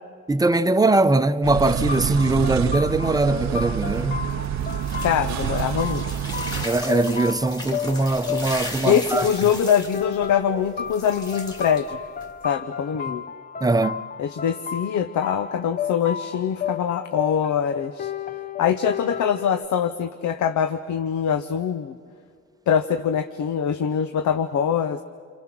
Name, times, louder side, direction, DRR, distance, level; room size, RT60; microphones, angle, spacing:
voice 1, 0.3-4.3 6.6-9.3 13.1-13.2 13.6-14.0, right 2 dB, 10° right, 0.8 m, -21 dB
sound 1, 1.4-6.7, right 10 dB, 65° right, 0.6 m, -27 dB
sound 2, 1.9-19.7, left 8 dB, 30° left, 0.7 m, -33 dB
sound 3, 3.3-12.5, left 1 dB, 15° left, 2.8 m, -37 dB
voice 2, 5.0-6.0 8.8-12.0 12.4-13.2 14.2-18.1 18.6-21.9 22.7-25.0, left 8 dB, 70° left, 1.0 m, -23 dB
29.0 x 24.0 x 6.1 m
cardioid pair, 90°, 30 cm